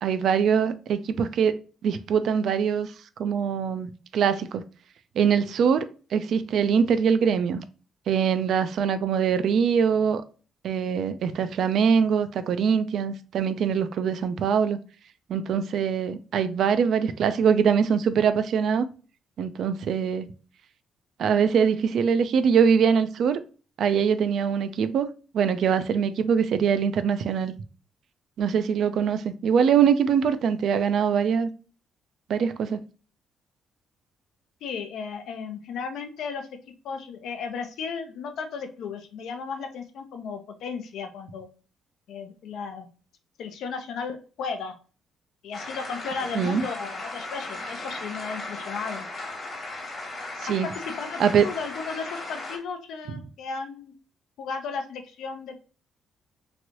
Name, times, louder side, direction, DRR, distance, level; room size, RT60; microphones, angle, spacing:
voice 1, 0.0-2.9 3.2-4.6 5.2-7.6 8.1-10.2 10.6-14.8 15.3-18.8 19.4-20.3 21.2-23.4 23.8-25.1 25.3-27.5 28.4-31.5 32.3-32.8 46.3-46.6 50.4-50.7 51.2-51.5 53.1-53.2, right 7 dB, 65° right, 0.4 m, -23 dB
voice 2, 34.6-36.5 36.8-41.5 42.1-42.9 43.4-44.7 45.4-49.1 50.5-53.9 54.4-55.5, left 5 dB, 75° left, 0.5 m, -35 dB
sound 1, 45.5-52.6, left 2 dB, 40° left, 1.2 m, -36 dB
3.1 x 2.6 x 2.8 m
cardioid pair, 100°, 0 cm